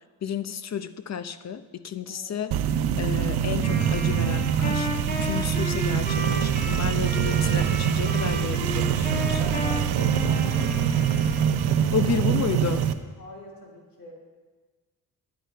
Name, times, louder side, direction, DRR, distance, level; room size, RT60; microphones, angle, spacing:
voice 1, 0.2-2.6 3.0-9.5 11.9-12.9, left 8 dB, 45° left, 12 dB, 0.8 m, -31 dB
voice 2, 2.1-2.4 9.3-11.2 11.6-14.1, left 1 dB, 65° left, -2 dB, 3.5 m, -44 dB
sound 1, 2.5-12.9, right 9 dB, 90° right, 0.7 m, -24 dB
Wind instrument woodwind instrument, 3.6-12.0, left 1 dB, 25° left, 2.0 m, -34 dB
11.5 x 9.3 x 4.6 m, 1.4 s
cardioid pair, 75°, 38 cm